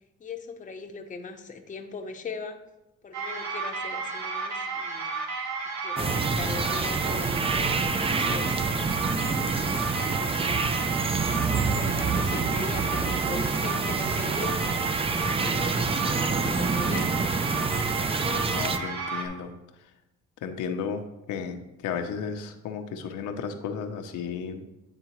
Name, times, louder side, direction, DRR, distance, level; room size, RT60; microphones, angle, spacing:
voice 1, 0.2-2.6 3.0-5.2 5.8-9.0 10.0-10.2 10.5-11.0 11.3-14.6 15.1-15.7 16.1-17.1, left 4 dB, 25° left, 4 dB, 0.6 m, -40 dB
sound 1, 3.1-19.3, right 4 dB, 65° right, 1.0 m, -32 dB
sound 2, 6.0-18.8, right 4 dB, 20° right, 0.3 m, -27 dB
voice 2, 18.5-19.5 20.4-24.6, left 6 dB, 80° left, 6 dB, 0.6 m, -34 dB
8.9 x 3.6 x 2.9 m, 0.95 s
cardioid pair, 90°, 30 cm